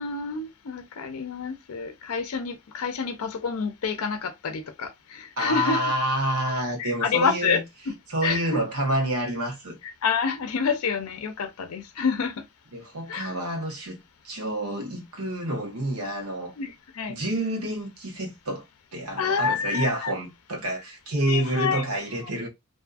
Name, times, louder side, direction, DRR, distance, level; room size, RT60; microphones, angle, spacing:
voice 1, 0.0-5.8 6.8-7.6 8.2-8.6 10.0-12.5 13.1-13.4 16.6-17.2 19.2-20.1 21.3-21.8, left 5 dB, 75° left, 0.5 m, -28 dB
voice 2, 5.4-7.6 8.1-9.8 12.7-14.0 14.2-16.5 17.1-18.6 18.9-22.5, right 1 dB, 85° right, 1.1 m, -28 dB
2.6 x 2.3 x 2.4 m
head